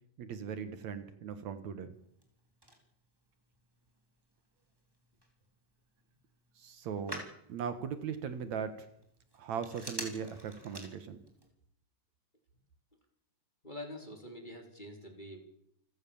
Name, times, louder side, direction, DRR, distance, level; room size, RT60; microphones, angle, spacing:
voice 1, 0.2-2.0 6.6-8.9 9.3-11.2, right 7 dB, 70° right, 11 dB, 2.6 m, -39 dB
Telephone, 1.9-11.5, equal, 5° right, 4.1 m, -50 dB
voice 2, 13.6-15.4, left 1 dB, 15° left, 3 dB, 3.6 m, -45 dB
28.5 x 16.5 x 7.1 m, 0.75 s
omnidirectional pair, 3.4 m